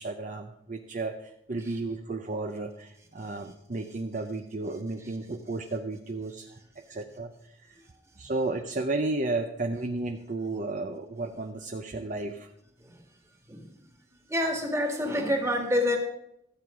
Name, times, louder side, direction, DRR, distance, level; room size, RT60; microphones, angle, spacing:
voice 1, 0.0-6.6 6.9-7.7 8.2-12.5, right 2 dB, 45° right, 5 dB, 0.6 m, -33 dB
voice 2, 14.3-16.0, left 1 dB, 15° right, 3 dB, 1.8 m, -27 dB
13.5 x 7.7 x 5.0 m, 0.77 s
head